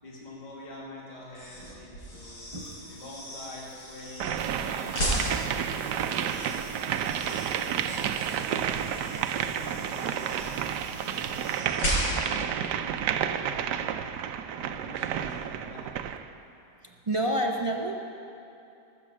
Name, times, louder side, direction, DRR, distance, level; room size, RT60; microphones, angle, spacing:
voice 1, 0.0-2.4 2.9-5.2 5.5-10.2 11.0-13.7 14.5-15.9, left 1 dB, 25° left, -5 dB, 2.2 m, -46 dB
sound 1, 1.3-12.4, equal, 80° left, 4.5 m, -36 dB
sound 2, 2.5-11.6, right 4 dB, 35° right, 1.3 m, -49 dB
sound 3, 4.2-16.3, right 9 dB, 80° right, 1.2 m, -31 dB
voice 2, 16.8-18.0, right 1 dB, 55° right, 1 dB, 0.3 m, -28 dB
19.0 x 7.4 x 7.4 m, 2.8 s
omnidirectional pair, 1.8 m